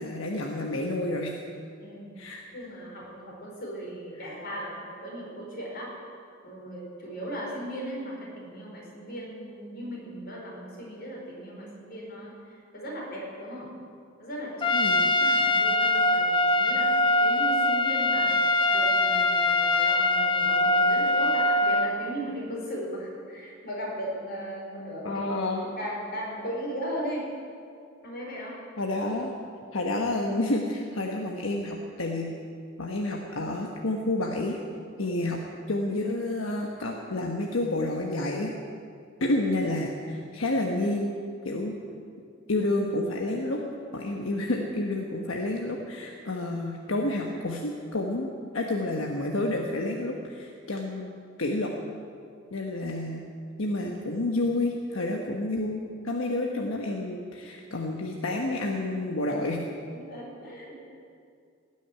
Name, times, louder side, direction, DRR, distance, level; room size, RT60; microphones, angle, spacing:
voice 1, 0.0-1.4 2.2-2.4 4.2-4.4 14.7-15.1 25.0-25.7 28.8-29.3 29.7-32.3 32.8-34.6 35.0-35.4 35.7-38.5 39.2-41.1 41.4-41.7 42.5-43.6 43.9-51.7 52.5-53.2 53.6-59.6, left 2 dB, 80° left, 1 dB, 1.2 m, -29 dB
voice 2, 1.8-2.2 2.5-5.9 6.4-13.7 14.2-14.8 15.1-16.9 17.2-18.3 18.7-25.3 25.6-27.3 28.0-28.6 35.0-35.2 59.9-60.9, equal, 50° left, -3 dB, 4.8 m, -37 dB
Trumpet, 14.6-21.9, left 2 dB, 25° left, 0.7 m, -23 dB
18.0 x 6.5 x 10.0 m, 2.4 s
head